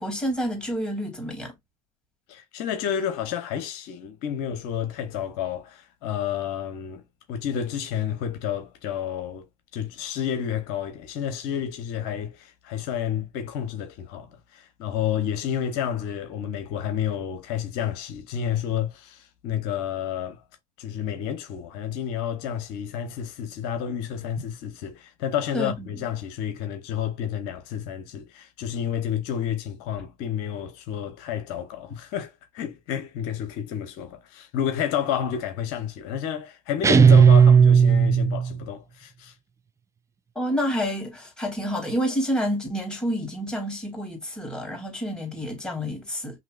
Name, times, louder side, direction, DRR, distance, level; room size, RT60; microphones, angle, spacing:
voice 1, 0.0-1.5 25.5-25.7 40.3-46.4, equal, 5° left, 2.7 m, -28 dB
voice 2, 2.3-7.0 7.3-9.5 9.7-20.4 20.8-39.3, left 9 dB, 65° left, 0.9 m, -30 dB
sound 1, 36.8-38.6, right 6 dB, 15° right, 0.4 m, -14 dB
5.8 x 2.8 x 2.4 m
hypercardioid pair, 75°, 18 cm